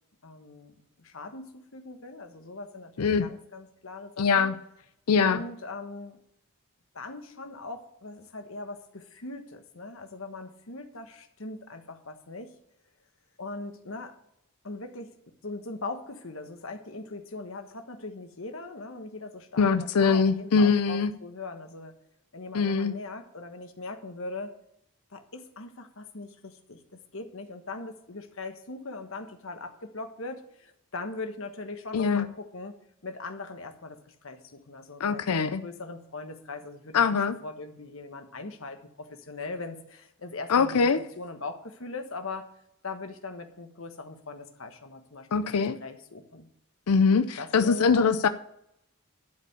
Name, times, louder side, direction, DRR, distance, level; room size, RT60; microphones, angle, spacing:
voice 1, 0.2-4.5 5.2-6.2 6.9-12.5 13.4-14.2 14.6-15.2 15.4-21.9 22.3-24.6 25.1-32.7 33.0-40.9 41.2-42.5 42.8-46.5 47.4-48.1, left 3 dB, 65° left, 6 dB, 1.3 m, -40 dB
voice 2, 4.2-4.5 5.1-5.4 19.6-21.1 22.5-22.9 31.9-32.3 35.0-35.6 36.9-37.4 40.5-41.0 45.3-45.8 46.9-48.3, left 5 dB, 90° left, 11 dB, 0.5 m, -23 dB
11.5 x 5.0 x 8.1 m, 0.76 s
head